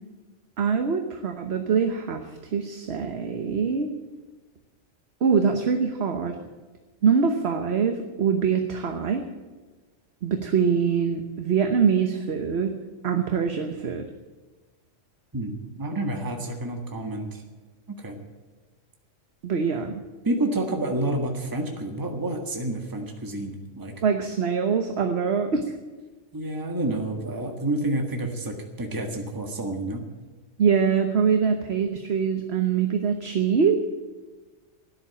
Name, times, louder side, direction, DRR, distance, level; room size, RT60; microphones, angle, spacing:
voice 1, 0.6-2.2 2.5-3.9 5.2-6.4 7.0-9.2 10.2-12.7 13.0-14.0 19.4-20.0 24.0-25.6 30.6-33.8, right 6 dB, 55° right, 5 dB, 1.2 m, -23 dB
voice 2, 15.3-17.4 17.9-18.2 20.2-23.9 26.3-30.0, right 1 dB, 15° right, 3 dB, 1.6 m, -29 dB
12.5 x 10.0 x 8.6 m, 1.3 s
omnidirectional pair, 1.3 m